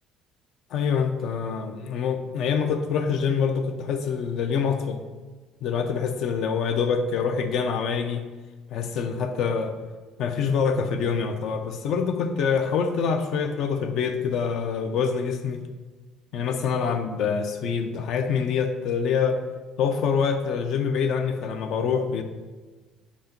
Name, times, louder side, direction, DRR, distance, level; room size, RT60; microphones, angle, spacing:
voice 1, 0.7-5.0 5.6-8.2 8.7-9.7 10.2-15.6 16.3-19.4 19.8-22.2, left 6 dB, 60° left, 7 dB, 0.6 m, -25 dB
8.4 x 2.9 x 5.1 m, 1.3 s
cardioid pair, 150°, 0 cm